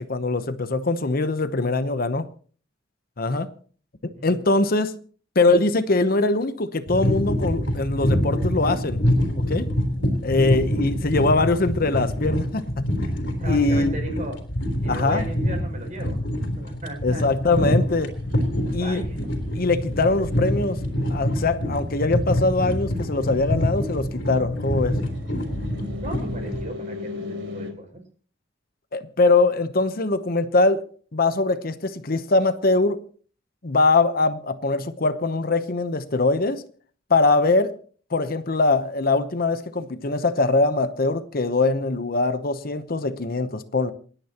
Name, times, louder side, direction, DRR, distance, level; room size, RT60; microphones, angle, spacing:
voice 1, 0.0-2.3 3.2-3.5 4.2-4.9 5.3-9.0 9.4-9.7 10.2-12.9 13.5-14.0 14.9-15.2 17.0-18.1 18.7-19.0 19.5-20.8 21.1-25.0 28.9-30.9 31.1-33.0 33.6-36.6 37.1-37.7 38.1-43.9, left 3 dB, 50° left, 0.9 m, -22 dB
voice 2, 4.1-4.4 13.4-14.4 14.8-17.2 18.8-19.3 26.0-27.9, right 2 dB, 40° right, 6.4 m, -36 dB
sound 1, 6.9-26.6, equal, 65° left, 3.6 m, -26 dB
sound 2, 17.8-27.7, left 3 dB, 70° right, 3.5 m, -40 dB
28.0 x 10.0 x 3.0 m
head